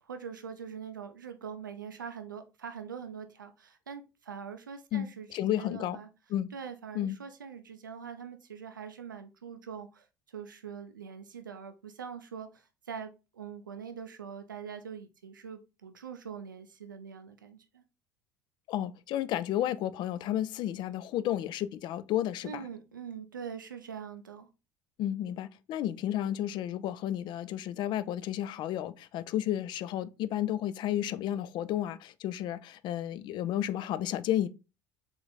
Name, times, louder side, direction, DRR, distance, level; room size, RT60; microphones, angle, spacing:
voice 1, 0.0-5.3 5.6-6.1 6.5-17.8 22.4-24.5, right 7 dB, 85° right, 0.4 m, -43 dB
voice 2, 4.9-6.0 6.3-6.5 6.9-7.2 18.7-22.7 25.0-34.5, left 12 dB, 50° left, 0.4 m, -32 dB
3.9 x 3.3 x 3.9 m
figure-of-eight pair, 65°, 10 cm